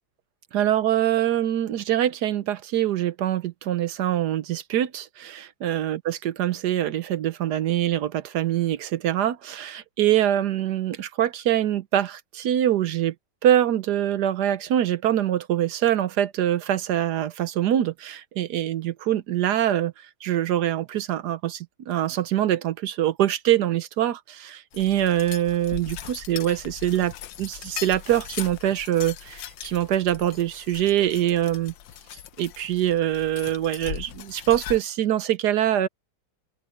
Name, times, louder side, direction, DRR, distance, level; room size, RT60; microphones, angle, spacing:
voice 1, 0.5-13.1 13.4-19.9 20.2-27.1 27.4-31.7 32.4-35.9, right 11 dB, 70° right, 1.3 m, -24 dB
sound 1, 24.7-34.8, left 10 dB, 80° left, 1.5 m, -39 dB
omnidirectional pair, 2.0 m